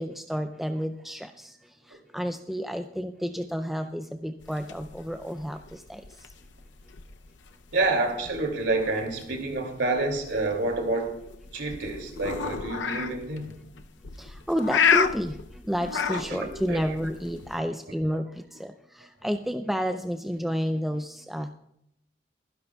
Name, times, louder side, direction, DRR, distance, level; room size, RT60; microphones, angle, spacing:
voice 1, 0.0-6.3 14.2-21.6, equal, ahead, 6 dB, 0.4 m, -31 dB
sound 1, 4.4-17.6, left 6 dB, 85° left, 0.7 m, -31 dB
voice 2, 7.7-11.2 11.5-13.5 16.1-17.0, right 2 dB, 75° right, 3 dB, 2.7 m, -28 dB
23.5 x 10.5 x 2.3 m, 0.78 s
head